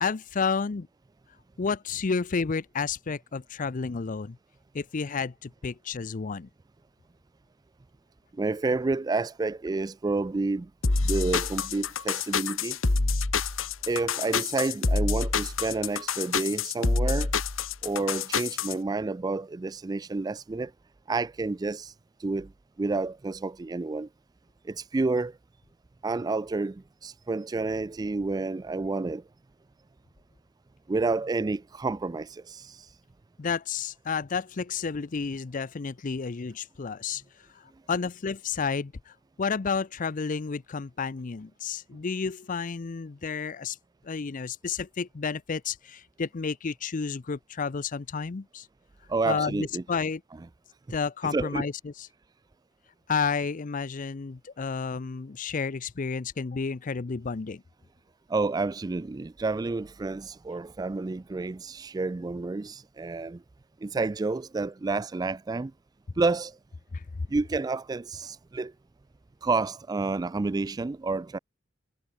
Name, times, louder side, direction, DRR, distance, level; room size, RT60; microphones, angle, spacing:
voice 1, 0.0-0.9 1.6-4.4 4.7-6.5 33.4-37.2 37.5-43.8 44.0-48.7 49.2-50.2 50.9-52.1 53.1-57.6 66.9-67.0, left 5 dB, 40° left, 0.5 m, -31 dB
voice 2, 8.3-10.7 11.0-12.8 13.9-17.3 17.8-20.7 21.1-21.9 22.2-22.5 22.8-24.1 24.6-25.4 26.0-29.2 30.9-33.0 49.1-49.8 51.2-51.6 58.3-63.4 63.8-65.7 66.2-66.6 67.3-68.7 69.4-71.4, right 3 dB, 20° right, 0.3 m, -29 dB
sound 1, 10.8-18.7, left 4 dB, 80° left, 1.5 m, -27 dB
head